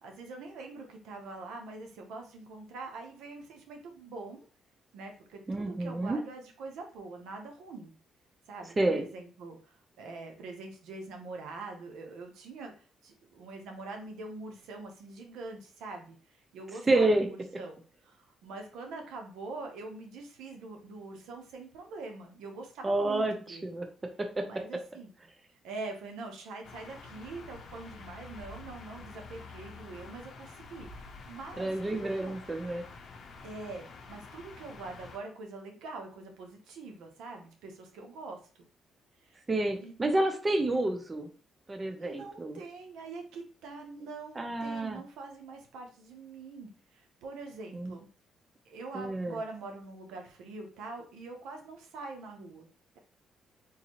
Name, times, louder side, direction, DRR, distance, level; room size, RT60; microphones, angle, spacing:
voice 1, 0.0-4.5 4.9-7.9 8.5-23.7 24.4-25.1 25.6-32.3 33.4-38.4 39.2-39.4 39.8-40.2 42.0-48.1 48.6-52.7, right 3 dB, 90° right, 3 dB, 0.8 m, -44 dB
voice 2, 5.5-6.2 8.8-9.1 16.8-17.3 22.8-23.9 24.4-24.5 31.6-32.8 39.5-41.3 41.7-42.6 44.0-44.1 44.4-45.0 47.7-47.9 48.9-49.4, right 2 dB, 25° right, 5 dB, 0.6 m, -29 dB
sound 1, 26.6-35.2, left 4 dB, 60° left, 0.6 m, -48 dB
3.8 x 2.7 x 3.0 m, 0.38 s
cardioid pair, 90°, 0 cm